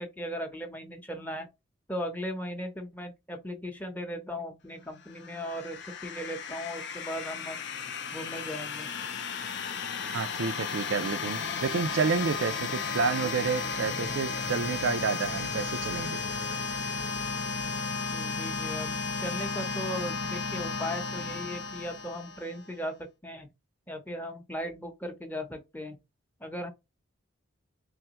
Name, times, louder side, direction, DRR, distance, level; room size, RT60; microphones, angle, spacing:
voice 1, 0.0-1.5 1.9-7.6 8.1-8.9 18.1-23.0 23.2-23.5 23.9-26.0 26.4-26.7, equal, 10° left, 0.7 m, -37 dB
sound 1, 5.1-22.7, left 5 dB, 60° left, 0.6 m, -34 dB
voice 2, 10.1-16.2, right 5 dB, 65° right, 0.4 m, -30 dB
3.4 x 3.4 x 2.9 m
head